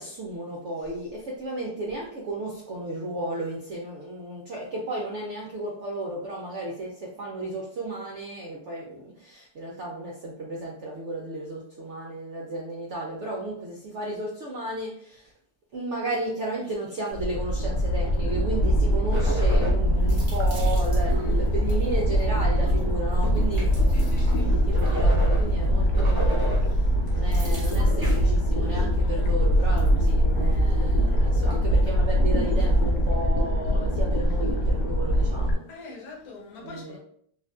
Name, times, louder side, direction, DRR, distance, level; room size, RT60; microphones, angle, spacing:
voice 1, 0.0-15.3 15.7-35.6 36.6-37.0, right 2 dB, 70° right, -2 dB, 0.7 m, -34 dB
sound 1, 17.1-35.5, equal, 85° left, 1.3 m, -22 dB
sound 2, 19.1-19.8 20.1-22.2 22.6-22.8 23.1-25.7 25.9-26.7 27.1-28.3 29.0-29.2 29.8-30.1 30.5-30.6 31.5-31.6, right 1 dB, 35° right, 0.3 m, -37 dB
voice 2, 21.0-21.4 23.9-24.6 27.1-27.5 28.6-28.8 35.7-37.0, left 3 dB, 70° left, -1 dB, 1.2 m, -44 dB
3.6 x 2.5 x 2.3 m, 0.65 s
omnidirectional pair, 1.8 m